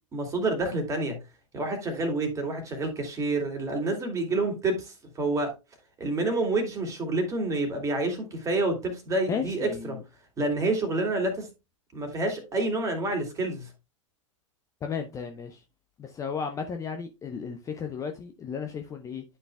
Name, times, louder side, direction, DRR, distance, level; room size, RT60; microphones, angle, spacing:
voice 1, 0.1-1.2 1.5-5.5 6.0-10.0 10.4-11.5 11.9-13.7, right 2 dB, 20° right, 2.3 m, -28 dB
voice 2, 9.3-10.0 14.8-15.6 16.0-19.2, left 6 dB, 20° left, 0.7 m, -34 dB
11.0 x 5.5 x 2.2 m
figure-of-eight pair, 95°, 17 cm